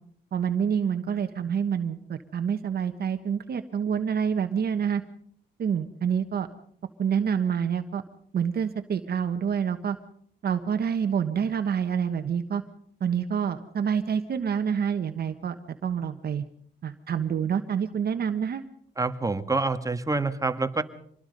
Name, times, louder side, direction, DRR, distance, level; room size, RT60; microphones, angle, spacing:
voice 1, 0.3-5.0 5.6-6.5 7.0-8.0 8.3-10.0 10.4-12.6 13.0-15.5 15.8-16.4 16.8-18.6, right 7 dB, 50° right, 7 dB, 1.4 m, -27 dB
voice 2, 19.0-20.8, right 3 dB, 15° right, 9 dB, 1.7 m, -27 dB
26.0 x 20.5 x 5.4 m, 0.65 s
cardioid pair, 90°, 20 cm